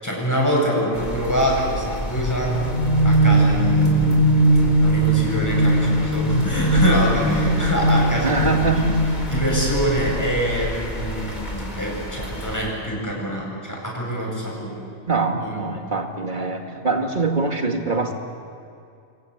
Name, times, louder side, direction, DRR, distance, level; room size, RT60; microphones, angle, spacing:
voice 1, 0.0-2.6 3.0-8.9 9.3-14.8 15.3-15.9, equal, 15° left, -3 dB, 8.1 m, -25 dB
sound 1, 0.9-12.6, equal, 35° left, 4.4 m, -31 dB
sound 2, 2.2-9.9, right 1 dB, 55° left, 5.2 m, -19 dB
voice 2, 8.2-9.0 15.1-18.1, right 3 dB, 40° right, 3 dB, 2.4 m, -23 dB
28.0 x 24.5 x 8.2 m, 2.5 s
omnidirectional pair, 1.2 m